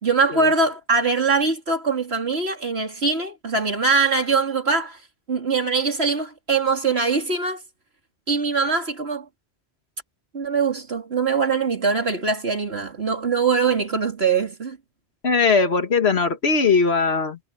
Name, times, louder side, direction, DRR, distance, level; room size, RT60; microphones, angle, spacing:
voice 1, 0.0-5.0 5.3-7.6 8.3-9.2 10.3-14.8, right 4 dB, 70° right, 3.2 m, -22 dB
voice 2, 15.2-17.4, left 4 dB, 70° left, 1.9 m, -20 dB
omnidirectional pair, 1.1 m